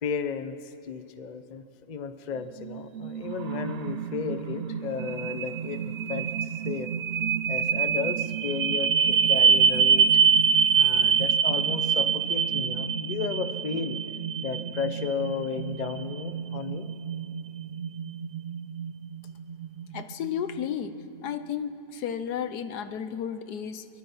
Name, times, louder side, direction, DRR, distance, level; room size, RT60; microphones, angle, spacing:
voice 1, 0.0-5.8 6.1-6.9 7.5-10.1 10.7-14.0 14.4-16.9, left 6 dB, 35° left, 10 dB, 0.7 m, -34 dB
sound 1, 2.6-20.7, right 7 dB, 80° right, 0.5 m, -26 dB
voice 2, 19.9-20.9 21.2-23.9, left 8 dB, 75° left, 11 dB, 1.4 m, -33 dB
23.5 x 23.0 x 5.6 m, 2.7 s
omnidirectional pair, 1.7 m